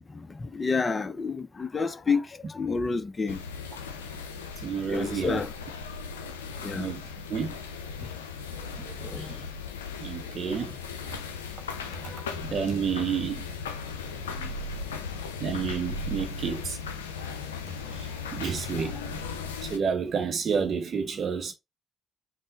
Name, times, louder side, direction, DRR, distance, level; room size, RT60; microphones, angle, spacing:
voice 1, 0.1-3.4 4.9-5.5 6.6-6.9 8.8-9.5 10.5-10.6 11.0-11.1 11.8-12.6 13.1-13.3 14.2-14.5 18.7-19.0, left 4 dB, 30° left, 0.5 m, -31 dB
sound 1, 3.3-19.8, left 5 dB, 75° left, 0.5 m, -37 dB
voice 2, 4.6-5.4 6.8-7.0 7.3-7.5 9.2-9.3 10.0-10.8 12.4-13.5 15.4-16.8 18.0-19.2 19.7-21.5, right 6 dB, 45° right, 0.6 m, -30 dB
5.3 x 2.0 x 4.0 m
figure-of-eight pair, 40°, 0 cm